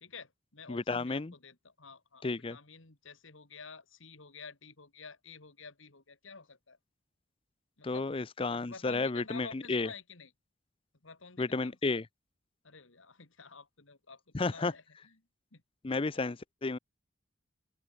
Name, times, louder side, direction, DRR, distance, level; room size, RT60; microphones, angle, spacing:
voice 1, 0.0-6.8 7.8-8.1 8.5-10.3 11.0-12.0 12.6-15.1 15.5-15.6 16.1-16.3, left 5 dB, 80° left, 2.4 m, -51 dB
voice 2, 0.7-1.3 2.2-2.6 7.8-9.9 11.4-12.1 14.3-14.7 15.8-16.8, left 3 dB, 30° left, 0.5 m, -32 dB
open air
head